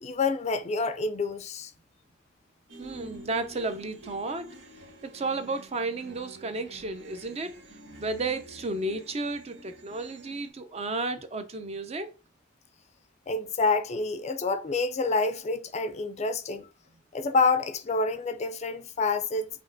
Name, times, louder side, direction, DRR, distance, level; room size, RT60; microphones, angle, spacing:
voice 1, 0.0-1.7 13.3-16.7 17.1-19.5, left 3 dB, 35° left, 0.4 m, -28 dB
sound 1, 2.7-10.5, equal, 90° right, 1.1 m, -49 dB
voice 2, 2.8-4.6 5.0-7.6 8.0-12.1, right 3 dB, 35° right, 0.5 m, -33 dB
5.2 x 2.9 x 2.6 m
head